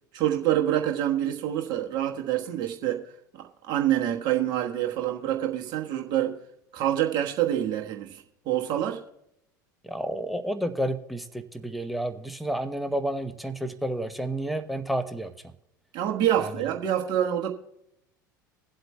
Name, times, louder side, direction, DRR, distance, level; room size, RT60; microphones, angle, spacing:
voice 1, 0.1-3.0 3.4-6.4 6.7-9.0 15.9-17.5, right 11 dB, 40° right, 1.3 m, -26 dB
voice 2, 9.8-15.3 16.4-16.5, right 1 dB, ahead, 0.8 m, -30 dB
22.0 x 7.8 x 2.3 m
figure-of-eight pair, 75°, 11 cm